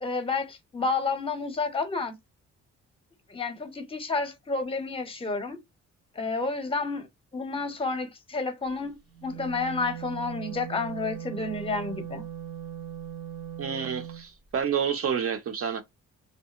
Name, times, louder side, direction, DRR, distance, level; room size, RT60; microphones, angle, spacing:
voice 1, 0.0-2.1 3.3-5.6 6.1-7.1 7.3-12.2, left 3 dB, 20° left, 0.6 m, -30 dB
Wind instrument woodwind instrument, 9.1-14.2, right 9 dB, 85° right, 1.1 m, -39 dB
voice 2, 13.6-15.8, right 7 dB, 50° right, 0.6 m, -29 dB
2.7 x 2.1 x 2.3 m
cardioid pair, 90°, 30 cm